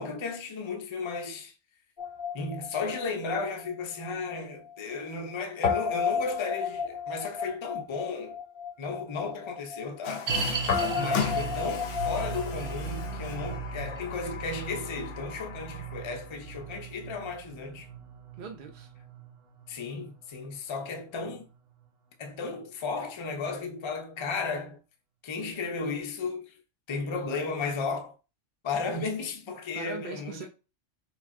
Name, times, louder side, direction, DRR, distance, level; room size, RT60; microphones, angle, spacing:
voice 1, 0.0-1.5 2.3-8.4 8.8-17.9 19.7-21.5 22.2-24.8 25.2-26.5 26.9-28.1 28.6-30.5, left 4 dB, 35° left, 0.5 m, -34 dB
Guitar, 2.0-4.4 4.7-4.8 5.6-13.5, left 6 dB, 55° left, 0.9 m, -33 dB
Water tap faucet, 10.0-16.4, left 8 dB, 80° left, 1.0 m, -38 dB
sound 1, 10.3-21.6 21.8-21.9 22.6-22.7, right 4 dB, 80° right, 1.1 m, -37 dB
voice 2, 10.7-11.2 18.4-18.9 29.7-30.5, right 3 dB, 50° right, 0.8 m, -39 dB
3.3 x 3.2 x 3.6 m
omnidirectional pair, 1.2 m